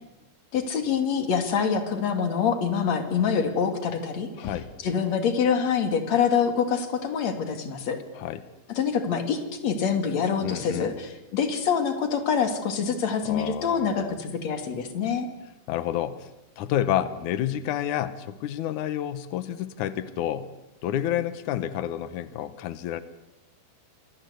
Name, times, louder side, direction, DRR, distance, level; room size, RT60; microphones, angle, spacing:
voice 1, 0.5-4.5 4.8-8.0 8.7-15.3, left 6 dB, 45° left, 8 dB, 3.2 m, -25 dB
voice 2, 4.4-4.7 8.1-8.4 10.4-11.0 13.2-14.2 15.7-16.3 16.6-20.5 20.8-23.0, left 11 dB, 85° left, 14 dB, 1.7 m, -29 dB
Knock, 4.4-5.1, left 5 dB, 60° left, 2.4 m, -40 dB
27.0 x 21.5 x 8.2 m, 0.94 s
omnidirectional pair, 5.0 m